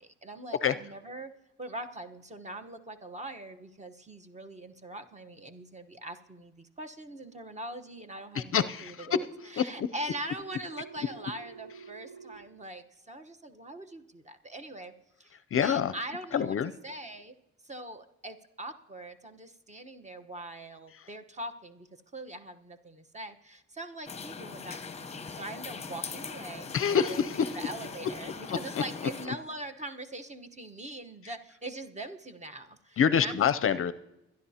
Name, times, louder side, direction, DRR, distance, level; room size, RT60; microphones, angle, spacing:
voice 1, 0.0-1.3 1.6-9.3 9.5-14.9 15.2-16.6 16.8-17.3 17.6-21.9 22.1-26.7 27.1-27.2 27.5-33.5, right 1 dB, 25° right, 7 dB, 1.1 m, -42 dB
voice 2, 8.3-9.1 9.6-9.9 15.5-15.9 16.3-16.7 21.0-21.1 26.7-27.5 28.5-28.6 29.3-29.4 33.0-33.9, left 8 dB, 45° left, 13 dB, 0.5 m, -26 dB
Telephone, 10.3-12.3, right 5 dB, 80° right, 5.9 m, -48 dB
sound 1, 24.1-29.3, left 5 dB, 20° left, 0.9 m, -41 dB
23.5 x 10.5 x 2.8 m, 0.91 s
cardioid pair, 90°, 30 cm